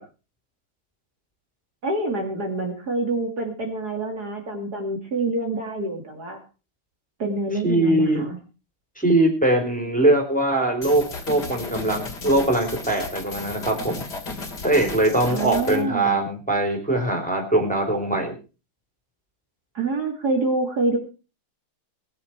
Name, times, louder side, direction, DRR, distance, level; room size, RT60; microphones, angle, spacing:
voice 1, 1.8-6.4 7.2-8.4 15.3-16.2 19.7-21.0, right 2 dB, 50° right, 2 dB, 2.9 m, -26 dB
voice 2, 7.6-8.2 9.0-14.0 14.6-18.4, right 1 dB, 5° left, 3 dB, 3.7 m, -21 dB
sound 1, 10.8-15.8, left 3 dB, 55° left, 3.3 m, -35 dB
20.5 x 10.5 x 4.5 m, 0.34 s
omnidirectional pair, 2.3 m